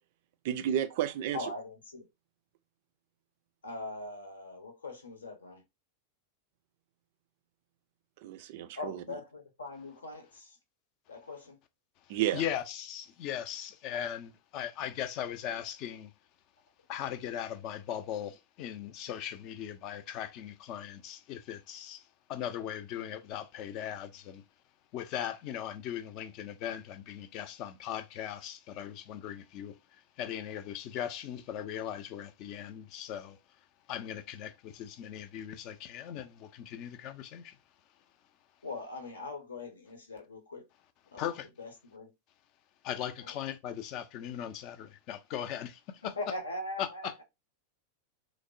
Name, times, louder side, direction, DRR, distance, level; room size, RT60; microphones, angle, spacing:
voice 1, 0.4-1.4 8.2-9.0 12.1-12.4, right 11 dB, 50° right, 0.3 m, -31 dB
voice 2, 1.3-2.1 3.6-5.6 8.7-10.6 11.1-11.6 38.6-40.7 41.1-42.1 43.2-43.4 46.0-47.2, left 2 dB, 75° left, 0.7 m, -41 dB
voice 3, 12.1-16.1 16.9-24.4 24.9-33.4 33.9-37.6 41.2-41.5 42.8-46.1 46.8-47.2, left 10 dB, 40° left, 0.4 m, -39 dB
3.2 x 2.0 x 2.5 m
figure-of-eight pair, 90°, 0 cm